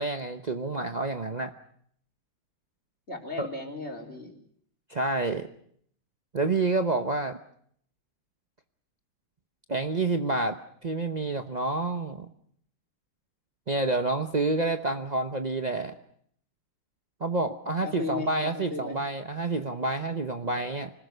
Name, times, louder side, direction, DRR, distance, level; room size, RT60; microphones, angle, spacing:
voice 1, 0.0-1.5 3.4-3.5 4.9-5.5 6.3-7.4 9.7-12.3 13.7-15.9 17.2-20.9, right 3 dB, 70° right, 5 dB, 0.4 m, -28 dB
voice 2, 3.1-4.3 17.8-19.0, left 3 dB, 30° left, 1 dB, 4.1 m, -36 dB
25.5 x 20.0 x 6.7 m, 0.64 s
omnidirectional pair, 2.4 m